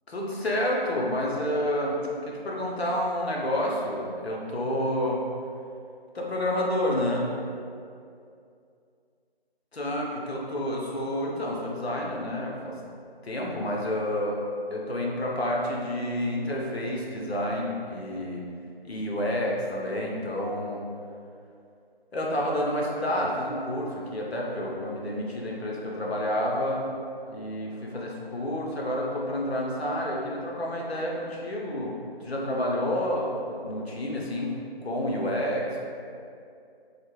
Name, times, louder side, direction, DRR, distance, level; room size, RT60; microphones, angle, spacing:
voice 1, 0.1-5.2 6.1-7.3 9.7-12.8 13.2-14.4 14.7-18.5 18.8-20.8 22.1-26.9 27.3-34.6 34.8-35.8, left 1 dB, 80° left, -2 dB, 0.6 m, -29 dB
2.1 x 2.0 x 3.0 m, 2.4 s
figure-of-eight pair, 180°, 31 cm